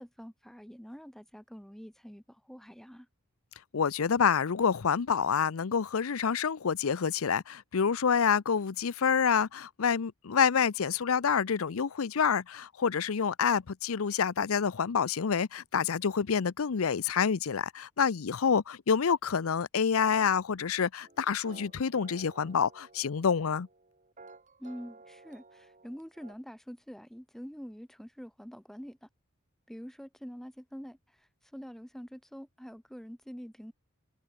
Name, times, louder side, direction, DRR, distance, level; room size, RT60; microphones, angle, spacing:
voice 1, 0.0-3.1 24.6-29.1 29.7-33.7, equal, ahead, 1.1 m, -46 dB
voice 2, 3.7-23.7, left 6 dB, 90° left, 0.6 m, -27 dB
sound 1, 21.0-26.4, right 3 dB, 35° right, 4.0 m, -54 dB
head